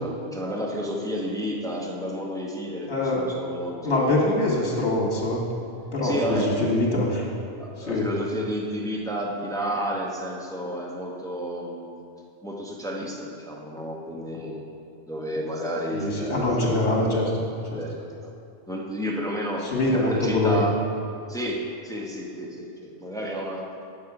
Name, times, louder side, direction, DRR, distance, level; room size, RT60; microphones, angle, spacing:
voice 1, 0.0-4.3 6.0-6.5 7.6-12.0 12.4-14.6 15.1-16.8 17.7-18.3 18.7-20.8 21.3-23.7, equal, 5° left, -2 dB, 0.8 m, -31 dB
voice 2, 2.9-3.2 3.8-5.4 5.9-7.3 7.8-8.1 15.9-17.3 17.7-17.8 19.7-20.6, left 2 dB, 80° left, -2 dB, 1.9 m, -23 dB
8.7 x 6.3 x 4.8 m, 2.6 s
omnidirectional pair, 1.1 m